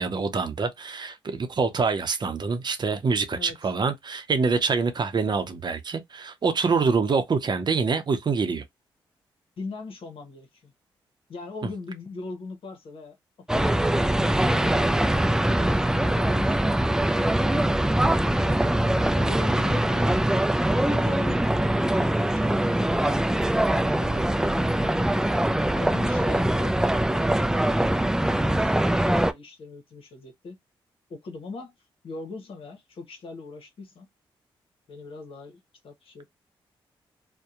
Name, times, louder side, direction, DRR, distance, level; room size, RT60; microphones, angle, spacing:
voice 1, 0.0-8.6, right 4 dB, 45° right, 0.7 m, -25 dB
voice 2, 9.6-10.7 11.3-13.2 13.5-15.0 15.6-16.7 17.2-18.7 19.1-20.2 20.7-23.3 23.7-25.3 25.7-27.5 27.8-30.6 31.1-31.7 32.0-34.1 34.9-36.3, left 3 dB, 65° left, 0.9 m, -40 dB
sound 1, 13.5-29.3, right 1 dB, 5° right, 0.3 m, -23 dB
2.7 x 2.2 x 2.4 m
supercardioid pair, 55°, 10 cm